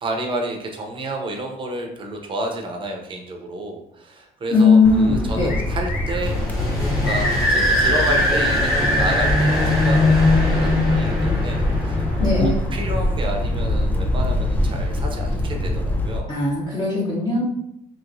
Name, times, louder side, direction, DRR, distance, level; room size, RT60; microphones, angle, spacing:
voice 1, 0.0-6.4 7.0-12.1 12.4-16.3, right 1 dB, 30° right, 2 dB, 0.7 m, -30 dB
voice 2, 4.5-5.5 12.2-12.5 16.3-17.4, left 4 dB, 25° left, -6 dB, 0.9 m, -18 dB
sound 1, 4.8-16.2, left 1 dB, 10° left, 0.3 m, -24 dB
sound 2, 5.5-6.3 7.8-9.2, left 3 dB, 65° left, 0.8 m, -37 dB
sound 3, 6.2-13.5, left 1 dB, 90° left, 1.1 m, -21 dB
3.0 x 3.0 x 2.6 m, 0.76 s
cardioid pair, 110°, 17 cm